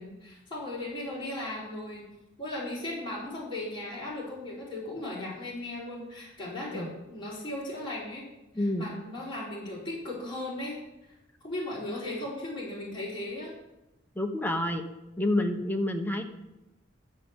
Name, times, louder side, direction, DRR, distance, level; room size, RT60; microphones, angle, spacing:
voice 1, 0.0-2.1 2.4-8.3 8.5-10.8 11.4-13.5, left 1 dB, 25° left, -7 dB, 4.0 m, -37 dB
voice 2, 8.5-8.9 14.1-14.9 15.2-16.2, left 1 dB, 10° left, 4 dB, 0.9 m, -28 dB
11.5 x 7.5 x 7.1 m, 0.95 s
head